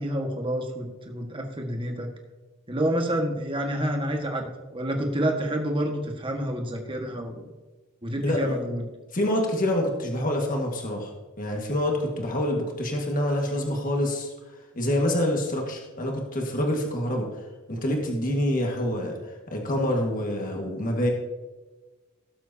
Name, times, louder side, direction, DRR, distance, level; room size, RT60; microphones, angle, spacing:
voice 1, 0.0-2.1 2.7-4.5 4.7-7.4 8.0-8.8, right 1 dB, 25° right, 2 dB, 1.6 m, -28 dB
voice 2, 8.2-8.6 9.1-11.1 11.4-14.3 14.7-17.4 17.7-19.2 19.5-21.1, left 1 dB, 40° left, 1 dB, 1.7 m, -26 dB
18.0 x 7.6 x 2.8 m, 1.2 s
head